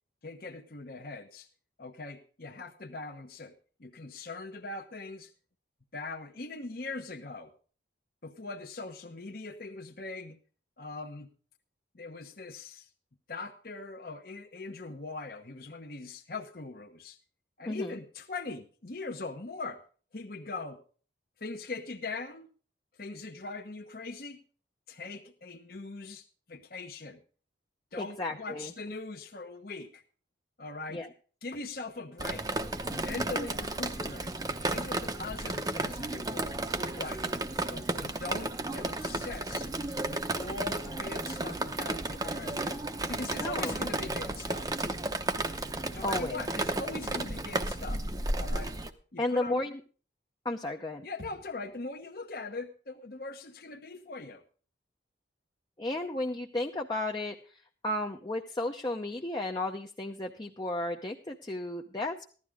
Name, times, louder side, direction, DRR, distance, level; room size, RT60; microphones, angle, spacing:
voice 1, 0.2-1.5 1.8-3.5 3.8-5.3 5.9-7.5 8.2-10.4 10.8-11.3 11.9-12.9 13.3-17.2 17.6-19.8 20.1-20.8 21.4-22.5 23.0-24.4 24.9-27.2 27.9-30.0 30.6-31.0 31.4-32.5 32.9-34.3 34.7-37.2 37.7-39.7 40.0-42.8 43.1-44.8 45.9-48.0 48.4-48.7 49.1-49.6 51.0-54.4, left 3 dB, 50° left, 3 dB, 1.0 m, -41 dB
voice 2, 17.7-18.0 28.0-28.7 30.9-31.1 43.4-43.7 46.0-46.4 49.2-49.7 50.4-51.1 55.8-62.2, left 2 dB, 25° left, 2 dB, 0.7 m, -33 dB
Drip, 32.2-48.9, right 2 dB, 20° right, 0.8 m, -33 dB
15.5 x 12.0 x 3.6 m, 0.40 s
head